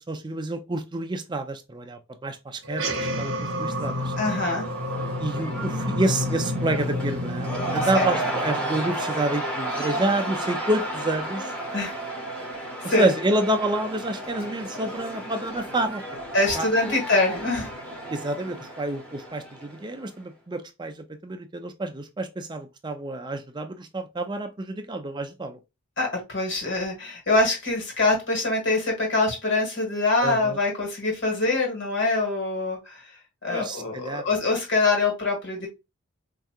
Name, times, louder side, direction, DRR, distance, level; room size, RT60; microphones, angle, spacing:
voice 1, 0.0-3.3 3.6-4.1 5.2-11.5 12.8-16.0 16.6-17.0 18.1-25.6 30.2-30.6 33.5-34.3, right 1 dB, 20° right, 0.4 m, -28 dB
sound 1, 2.6-9.4, left 1 dB, 55° right, 1.0 m, -30 dB
Cheering / Crowd, 3.2-20.1, right 1 dB, 5° left, 1.0 m, -33 dB
voice 2, 4.2-4.7 7.8-8.0 11.7-12.0 12.5-13.1 16.3-17.7 26.0-33.1 33.4-35.7, left 2 dB, 55° left, 1.5 m, -24 dB
4.6 x 2.7 x 2.3 m
head